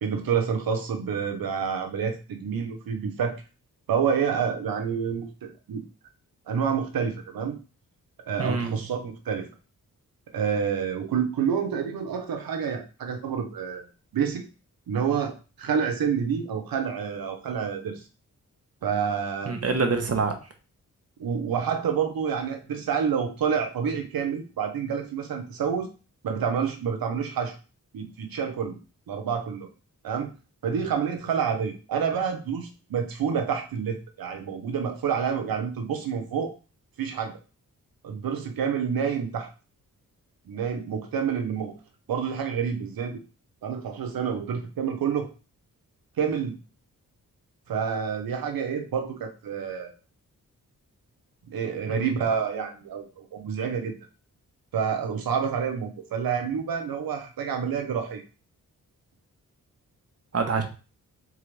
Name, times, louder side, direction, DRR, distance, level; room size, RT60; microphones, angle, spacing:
voice 1, 0.0-3.4 3.9-5.8 6.5-7.6 8.3-9.5 10.3-13.9 14.1-14.4 14.9-18.1 18.8-19.5 21.2-25.9 26.2-27.6 27.9-28.8 29.1-29.7 30.0-30.3 30.6-36.5 37.0-37.4 38.0-39.5 40.5-41.8 42.1-43.2 43.6-45.3 46.2-46.6 47.7-49.9 51.5-53.9 54.7-58.2, right 7 dB, 85° right, 4 dB, 0.9 m, -28 dB
voice 2, 8.4-8.7 19.5-20.3 51.9-52.1 60.3-60.6, right 4 dB, 45° right, 4 dB, 1.1 m, -26 dB
3.7 x 3.6 x 3.3 m, 0.33 s
cardioid pair, 60°, 34 cm